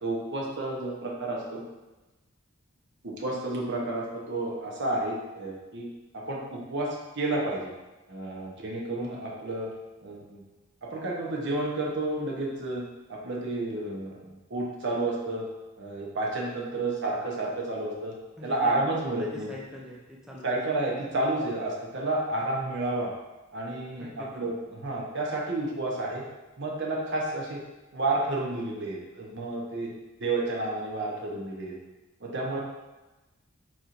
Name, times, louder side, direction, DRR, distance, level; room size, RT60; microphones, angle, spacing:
voice 1, 0.0-1.6 3.0-5.9 6.1-7.7 8.1-9.7 10.0-10.4 10.8-12.8 13.1-15.4 15.8-18.1 18.4-19.5 20.4-23.1 23.5-26.2 26.6-27.6 27.9-29.9 30.2-31.8 32.2-32.6, right 2 dB, 60° right, -2 dB, 0.9 m, -31 dB
voice 2, 18.4-18.8 19.0-20.5 24.0-24.6, equal, 5° right, -4 dB, 0.4 m, -43 dB
4.4 x 4.3 x 2.6 m, 1.1 s
head